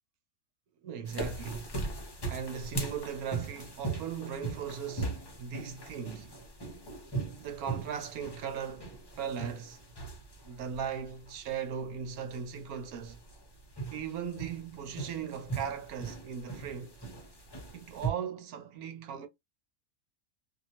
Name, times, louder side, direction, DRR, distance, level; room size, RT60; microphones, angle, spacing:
voice 1, 0.8-1.7 2.3-6.4 7.4-9.8 10.4-13.2 13.9-17.0 17.7-19.3, right 7 dB, 80° right, 1.2 m, -38 dB
sound 1, 1.1-18.1, right 3 dB, 25° left, 0.5 m, -40 dB
2.8 x 2.4 x 2.8 m
omnidirectional pair, 1.5 m